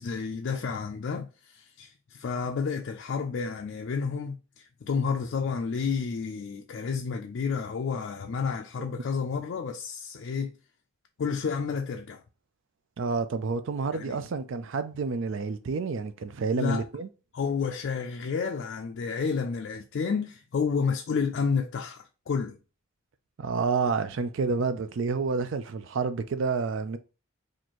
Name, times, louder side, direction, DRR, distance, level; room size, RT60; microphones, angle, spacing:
voice 1, 0.0-10.5 11.2-12.2 13.9-14.2 16.6-16.8 17.3-22.6, left 5 dB, 55° left, 0.4 m, -30 dB
voice 2, 13.0-17.1 23.4-27.0, right 4 dB, 65° right, 0.4 m, -29 dB
4.3 x 2.5 x 2.9 m
head